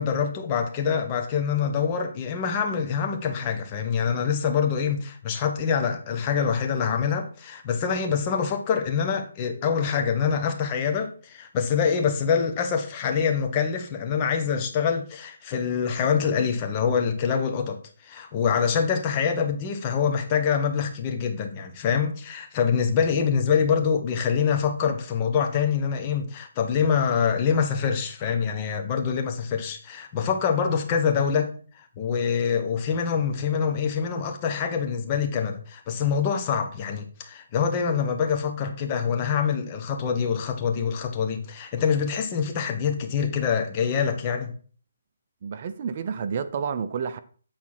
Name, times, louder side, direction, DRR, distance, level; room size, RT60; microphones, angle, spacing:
voice 1, 0.0-31.5 32.0-44.5, left 6 dB, 25° left, 1.4 m, -25 dB
voice 2, 45.4-47.2, right 6 dB, 45° right, 0.7 m, -30 dB
8.6 x 4.2 x 5.8 m
hypercardioid pair, 155°, 0 cm